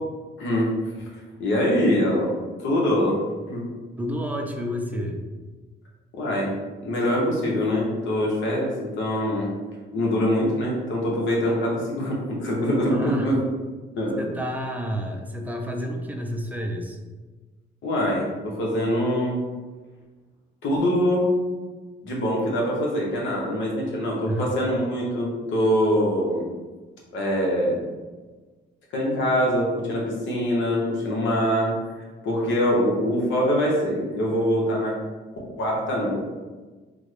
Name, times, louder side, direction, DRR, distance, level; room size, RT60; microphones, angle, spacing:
voice 1, 1.4-2.3 2.6-3.2 3.5-3.7 6.1-6.5 6.8-9.5 9.9-13.4 13.9-14.3 17.8-19.4 20.6-21.3 22.0-26.5 27.1-27.8 28.9-34.9 35.3-36.2, equal, 70° left, -3 dB, 1.2 m, -24 dB
voice 2, 4.0-5.2 12.9-13.4 14.2-17.0 24.2-24.4, equal, 10° right, 2 dB, 0.5 m, -30 dB
3.5 x 2.3 x 3.3 m, 1.3 s
cardioid pair, 90°, 20 cm